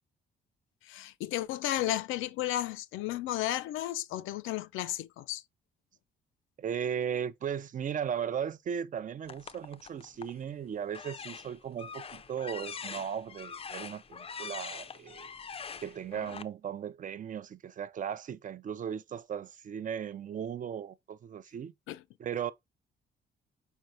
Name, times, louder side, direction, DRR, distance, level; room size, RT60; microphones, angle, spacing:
voice 1, 0.8-5.4 21.9-22.0, left 14 dB, 90° left, 0.4 m, -33 dB
voice 2, 6.6-15.3 15.8-21.7 22.2-22.5, right 8 dB, 40° right, 0.4 m, -37 dB
sound 1, 9.3-10.4 10.9-16.4, left 6 dB, 30° left, 0.4 m, -43 dB
4.6 x 4.5 x 2.5 m
cardioid pair, 90°, 20 cm